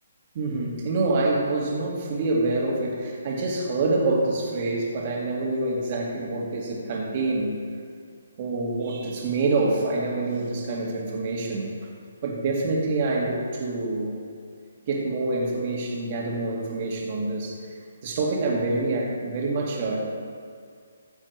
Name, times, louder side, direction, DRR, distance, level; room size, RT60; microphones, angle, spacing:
voice 1, 0.3-7.5 8.4-11.7 12.2-14.2 14.9-17.6 18.0-20.0, right 2 dB, 35° right, -2 dB, 2.2 m, -26 dB
15.0 x 7.2 x 4.7 m, 2.2 s
hypercardioid pair, 160°, 0 cm